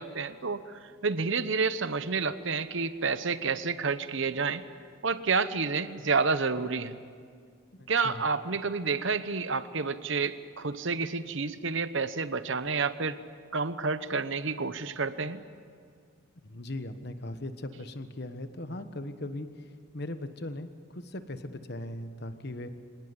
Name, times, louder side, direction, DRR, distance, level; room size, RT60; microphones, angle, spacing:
voice 1, 0.0-4.6 5.0-7.0 7.9-13.2 13.5-15.4, right 4 dB, 60° right, 13 dB, 1.0 m, -29 dB
voice 2, 7.8-8.2 16.4-19.5 19.9-22.7, left 1 dB, 50° left, 9 dB, 1.3 m, -39 dB
25.0 x 18.5 x 9.7 m, 2.1 s
head